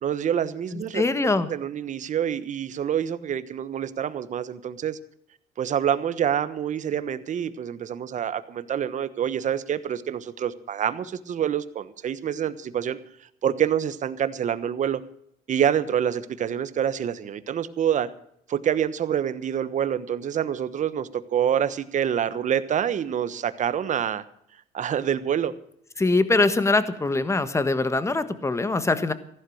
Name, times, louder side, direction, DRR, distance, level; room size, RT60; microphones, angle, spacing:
voice 1, 0.0-1.0 1.5-5.0 5.6-13.0 13.4-15.0 15.5-18.1 18.5-24.2 24.7-25.5, right 9 dB, 45° right, 14 dB, 1.2 m, -26 dB
voice 2, 0.7-1.5 26.0-29.1, left 3 dB, 15° left, 12 dB, 1.4 m, -23 dB
15.0 x 11.5 x 6.4 m, 0.71 s
cardioid pair, 110°, 17 cm